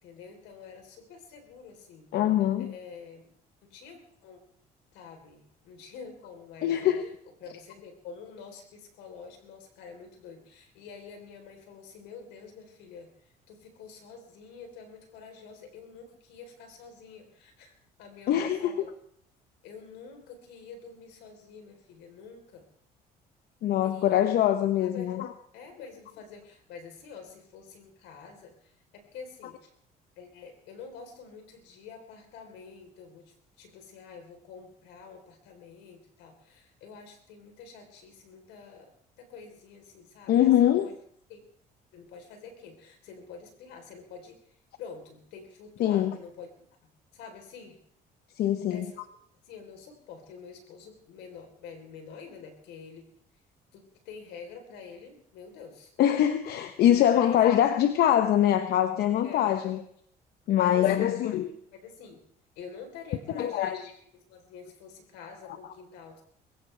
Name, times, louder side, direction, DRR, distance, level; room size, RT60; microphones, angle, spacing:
voice 1, 0.0-2.1 2.6-3.3 3.6-4.4 4.9-6.8 7.4-17.7 18.0-18.9 19.6-22.7 23.8-24.2 24.8-25.1 25.5-29.7 30.2-38.9 39.2-40.9 41.3-41.4 41.9-44.4 44.8-46.5 47.1-47.8 48.7-49.0 49.4-53.0 53.7-55.9 57.1-57.4 59.2-59.5 60.5-62.2 62.6-66.2, left 5 dB, 90° left, 4 dB, 3.8 m, -47 dB
voice 2, 2.1-2.7 6.6-7.1 18.3-18.7 23.6-25.3 40.3-40.9 45.8-46.2 48.4-48.9 56.0-59.8 60.5-61.5 63.3-63.8, left 11 dB, 70° left, 9 dB, 1.0 m, -23 dB
21.5 x 16.0 x 3.4 m, 0.63 s
cardioid pair, 110°, 17 cm